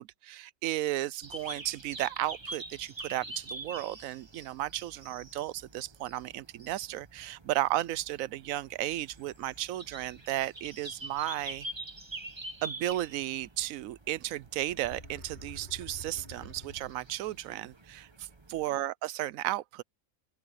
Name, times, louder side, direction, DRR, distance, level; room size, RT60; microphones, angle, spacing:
voice 1, 0.0-11.7 12.6-19.8, right 14 dB, 75° right, 1.0 m, -34 dB
sound 1, 1.2-18.7, right 2 dB, 20° right, 1.2 m, -46 dB
sound 2, 14.6-17.4, equal, 40° left, 5.2 m, -48 dB
open air
omnidirectional pair, 1.5 m